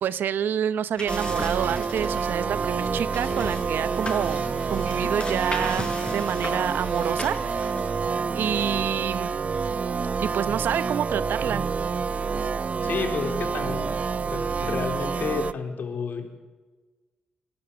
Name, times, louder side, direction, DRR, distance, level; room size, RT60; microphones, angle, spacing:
voice 1, 0.0-7.7 8.3-9.3 10.2-11.7, right 9 dB, 75° right, 16 dB, 0.8 m, -28 dB
sound 1, 1.0-8.1, left 3 dB, 30° left, 5.4 m, -38 dB
sound 2, 1.1-15.5, right 5 dB, 45° right, 0.6 m, -28 dB
voice 2, 12.8-14.0 14.3-16.5, left 5 dB, 65° left, 5 dB, 3.7 m, -31 dB
28.5 x 11.5 x 8.1 m, 1.3 s
cardioid pair, 75°, 3 cm